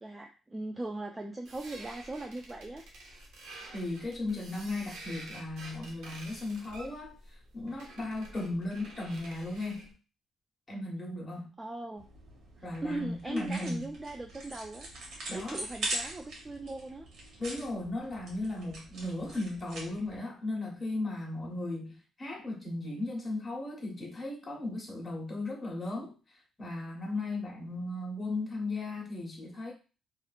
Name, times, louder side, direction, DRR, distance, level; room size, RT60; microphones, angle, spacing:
voice 1, 0.0-2.8 11.6-12.1 12.8-14.9 15.3-17.1, right 2 dB, 20° right, 3 dB, 0.3 m, -39 dB
sound 1, 1.4-9.9, right 2 dB, 85° right, 0.8 m, -49 dB
voice 2, 3.7-9.9 10.7-11.5 12.6-13.9 15.3-15.6 17.4-26.1 26.6-29.7, left 2 dB, 25° left, -2 dB, 1.1 m, -36 dB
sound 2, 12.0-20.2, right 1 dB, 70° right, 1.1 m, -42 dB
2.8 x 2.5 x 2.4 m, 0.34 s
cardioid pair, 90°, 0 cm